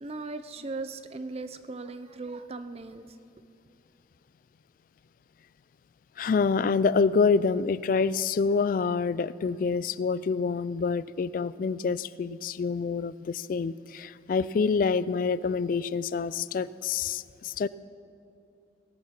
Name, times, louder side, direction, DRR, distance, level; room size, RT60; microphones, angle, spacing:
voice 1, 0.0-3.0, right 3 dB, 35° right, 11 dB, 0.5 m, -38 dB
voice 2, 6.2-17.7, left 5 dB, 50° left, 17 dB, 0.3 m, -27 dB
18.0 x 8.4 x 5.9 m, 2.6 s
head